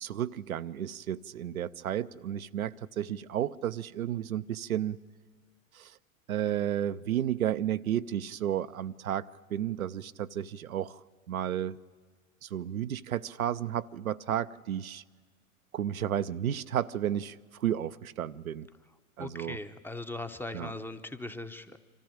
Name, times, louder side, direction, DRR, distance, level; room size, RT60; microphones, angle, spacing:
voice 1, 0.0-5.0 5.7-6.0 6.3-11.0 11.3-11.8 12.4-15.0 15.7-18.7 19.2-19.6 20.5-20.7, right 10 dB, 75° right, 0.6 m, -32 dB
voice 2, 19.2-21.8, left 2 dB, 5° left, 0.7 m, -39 dB
25.0 x 14.0 x 8.8 m
figure-of-eight pair, 90°, 42 cm